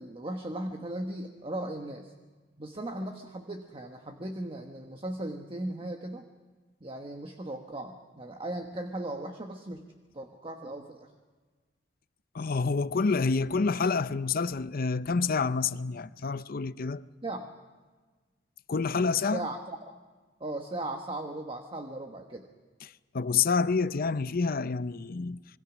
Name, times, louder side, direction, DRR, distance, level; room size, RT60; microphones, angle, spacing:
voice 1, 0.0-2.1 2.6-6.3 6.8-9.8 10.1-11.1 17.2-17.5 19.3-19.9 20.4-22.5, right 1 dB, 30° right, 1.2 m, -37 dB
voice 2, 12.3-17.0 18.7-19.5 22.8-25.4, left 4 dB, 50° left, 0.6 m, -28 dB
26.5 x 22.0 x 6.2 m
head